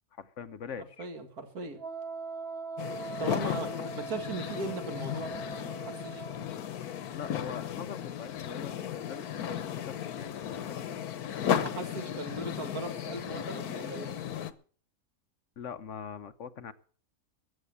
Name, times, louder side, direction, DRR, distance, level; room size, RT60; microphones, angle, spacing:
voice 1, 0.1-1.1 3.4-4.1 7.1-10.4 10.7-11.0 15.6-16.7, left 7 dB, 60° left, 13 dB, 1.1 m, -43 dB
voice 2, 1.0-1.8 3.2-3.7 3.9-5.3 5.9-6.2 11.5-14.1, right 3 dB, 90° right, 7 dB, 2.4 m, -38 dB
Wind instrument woodwind instrument, 1.8-6.5, right 4 dB, 45° right, 1.2 m, -41 dB
sound 1, 2.8-14.5, left 9 dB, 85° left, 1.4 m, -35 dB
14.5 x 8.5 x 8.1 m, 0.44 s
omnidirectional pair, 1.6 m